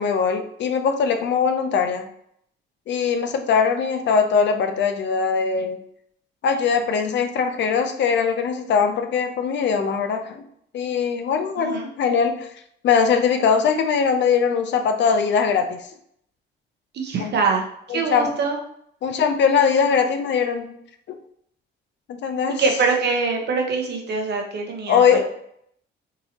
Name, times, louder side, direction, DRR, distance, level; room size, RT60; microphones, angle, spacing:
voice 1, 0.0-2.1 2.9-5.8 6.4-10.4 10.7-12.5 12.8-15.8 17.2-17.4 17.9-18.3 19.0-20.7 22.1-22.6 24.9-25.2, left 6 dB, 65° left, 6 dB, 0.6 m, -21 dB
voice 2, 16.9-18.6 22.6-25.2, right 4 dB, 60° right, 2 dB, 0.9 m, -24 dB
3.8 x 2.7 x 2.8 m, 0.70 s
cardioid pair, 90°, 20 cm